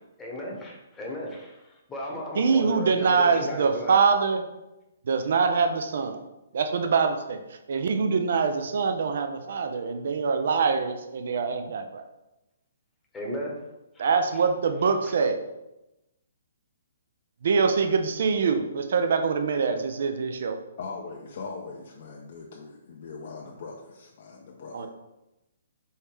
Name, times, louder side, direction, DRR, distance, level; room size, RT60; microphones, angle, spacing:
voice 1, 0.2-4.0 13.1-13.7 13.9-14.1 15.0-15.1, equal, 10° left, -2 dB, 1.0 m, -36 dB
voice 2, 2.4-4.4 5.1-6.2 6.5-7.4 7.7-12.0 14.0-15.4 17.4-20.6 24.7-24.9, right 5 dB, 60° right, 7 dB, 0.5 m, -24 dB
voice 3, 20.8-24.9, left 4 dB, 55° left, -1 dB, 0.6 m, -40 dB
4.4 x 3.4 x 3.3 m, 0.95 s
hypercardioid pair, 150°, 0 cm